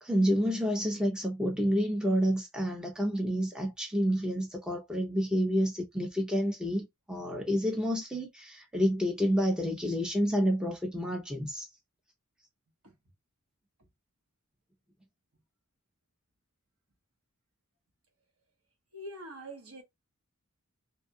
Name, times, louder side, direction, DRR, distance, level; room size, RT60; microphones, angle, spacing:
voice 1, 0.0-11.7, equal, 5° right, 0.6 m, -29 dB
voice 2, 18.9-19.8, right 1 dB, 75° right, 1.1 m, -44 dB
2.6 x 2.3 x 2.6 m
head